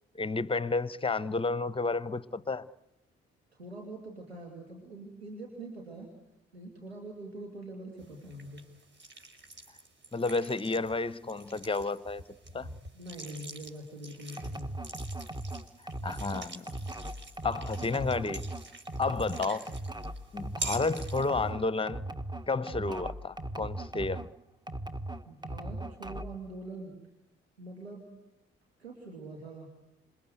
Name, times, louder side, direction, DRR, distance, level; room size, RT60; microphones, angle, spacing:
voice 1, 0.1-2.7 10.1-12.2 12.5-12.7 16.0-16.7 17.4-18.5 19.0-19.7 20.3-22.0 22.5-24.3, left 3 dB, 15° left, 1.1 m, -31 dB
voice 2, 3.5-6.1 6.5-8.7 12.9-14.8 18.9-19.2 25.3-27.0 27.6-28.1 28.8-29.7, right 2 dB, 85° right, 2.7 m, -44 dB
sound 1, 8.0-21.5, right 3 dB, 35° right, 4.9 m, -46 dB
sound 2, 14.4-24.3 24.7-26.4, right 1 dB, 15° right, 1.4 m, -38 dB
27.5 x 23.5 x 8.0 m
figure-of-eight pair, 40°, 30 cm